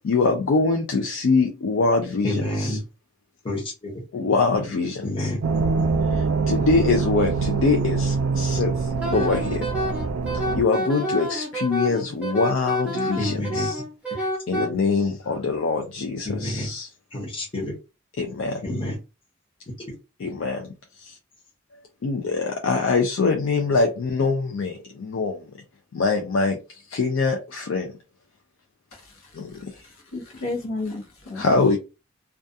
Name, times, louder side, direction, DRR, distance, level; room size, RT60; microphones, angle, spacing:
voice 1, 0.0-2.8 4.1-5.3 6.1-9.7 10.5-13.8 14.1-16.9 18.2-18.6 20.2-20.7 21.0-21.2 22.0-25.5 25.9-26.6 26.9-27.9 29.3-29.7 31.4-31.8, left 4 dB, 65° left, 0.4 m, -24 dB
voice 2, 2.2-2.8 3.4-3.9 5.0-5.4 13.2-13.7 14.5-14.6 16.2-16.7 17.1-17.7 18.6-19.0, left 1 dB, 25° left, 0.8 m, -28 dB
sound 1, 5.4-10.6, right 4 dB, 75° right, 0.3 m, -24 dB
Wind instrument woodwind instrument, 9.0-14.7, equal, 5° right, 0.6 m, -28 dB
voice 3, 28.9-31.4, left 2 dB, 90° left, 0.8 m, -34 dB
2.3 x 2.3 x 2.6 m
head